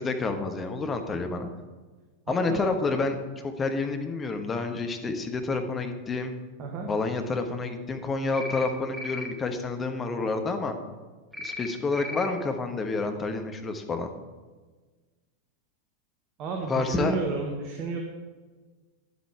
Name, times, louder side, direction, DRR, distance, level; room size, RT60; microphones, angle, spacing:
voice 1, 0.0-1.5 2.3-6.3 6.9-10.8 11.4-14.1 16.7-17.2, left 3 dB, 20° left, 6 dB, 1.2 m, -29 dB
voice 2, 2.3-2.6 6.6-6.9 16.4-18.0, right 4 dB, 35° right, 1 dB, 1.5 m, -32 dB
sound 1, 8.3-8.7 8.9-9.3 11.3-11.7 11.9-12.3, left 2 dB, ahead, 1.2 m, -36 dB
11.0 x 8.3 x 4.6 m, 1.3 s
figure-of-eight pair, 90°, 0 cm